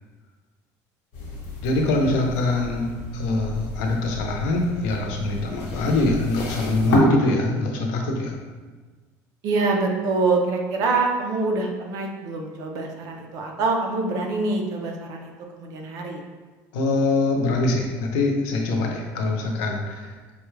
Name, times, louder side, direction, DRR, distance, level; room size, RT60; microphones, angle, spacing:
sound 1, 1.1-7.0, left 3 dB, 65° left, 1.1 m, -33 dB
voice 1, 1.6-2.9 3.1-8.4 16.7-20.1, left 2 dB, 80° left, 1 dB, 0.7 m, -23 dB
voice 2, 9.4-16.2, right 3 dB, 45° right, 1 dB, 0.6 m, -25 dB
5.2 x 2.3 x 3.2 m, 1.4 s
cardioid pair, 170°, 8 cm